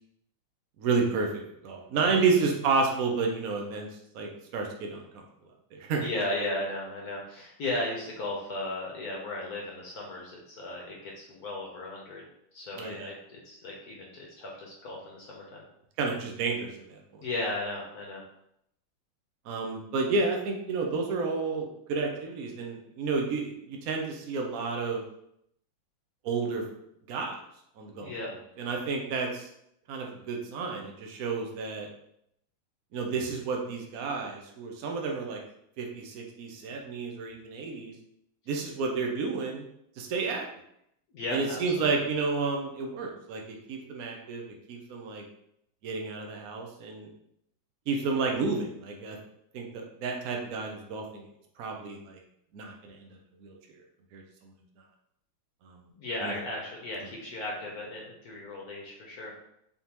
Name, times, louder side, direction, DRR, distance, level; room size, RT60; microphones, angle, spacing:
voice 1, 0.8-3.9 4.1-5.2 5.7-6.1 12.8-13.1 16.0-17.0 19.5-25.0 26.2-26.6 27.1-27.4 27.8-28.1 28.6-29.5 29.9-31.9 32.9-35.4 35.8-37.9 38.5-39.6 40.0-40.4 41.3-45.2 45.8-47.1 47.9-49.2 49.5-51.3 51.6-52.2 52.5-53.1 53.4-53.6 54.1-54.5 55.6-55.8 56.2-56.3, right 4 dB, 75° right, 1 dB, 0.8 m, -31 dB
voice 2, 1.9-2.4 6.0-12.2 12.5-15.6 17.2-18.2 28.0-28.3 41.1-42.1 55.9-59.3, left 2 dB, 60° left, -2 dB, 1.1 m, -36 dB
4.0 x 3.5 x 2.9 m, 0.75 s
omnidirectional pair, 2.3 m